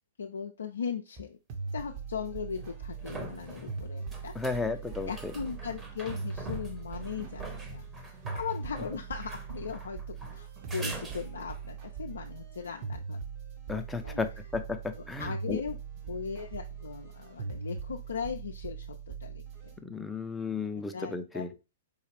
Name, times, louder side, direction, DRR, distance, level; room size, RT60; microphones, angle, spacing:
voice 1, 0.2-1.4 1.7-4.3 5.1-7.8 8.3-13.2 14.0-14.2 15.2-15.8 16.1-19.8 20.9-21.6, left 6 dB, 75° left, 3 dB, 0.4 m, -38 dB
sound 1, 1.2-1.3 2.5-11.7 15.1-15.2, right 1 dB, 20° right, 0.9 m, -44 dB
sound 2, 1.5-19.8, right 5 dB, 40° right, 1.1 m, -41 dB
voice 2, 4.4-5.3 13.7-15.6 19.8-21.5, left 4 dB, 10° left, 7 dB, 0.5 m, -34 dB
4.7 x 2.4 x 3.3 m, 0.29 s
figure-of-eight pair, 115°, 0 cm